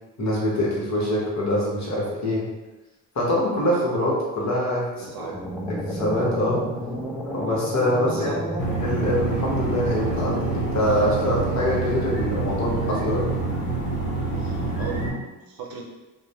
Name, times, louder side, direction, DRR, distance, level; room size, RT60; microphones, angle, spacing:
voice 1, 0.2-2.5 3.1-5.3 5.7-6.6 7.3-8.3 8.8-13.3, equal, 40° left, -4 dB, 1.2 m, -24 dB
voice 2, 5.0-5.5 8.1-8.4 14.4-15.9, right 4 dB, 55° right, -1 dB, 0.7 m, -36 dB
sound 1, 5.3-9.6, equal, 5° right, 0.5 m, -31 dB
sound 2, 8.6-15.1, right 3 dB, 60° left, 1.0 m, -27 dB
2.9 x 2.1 x 2.7 m, 1.1 s
hypercardioid pair, 55°, 42 cm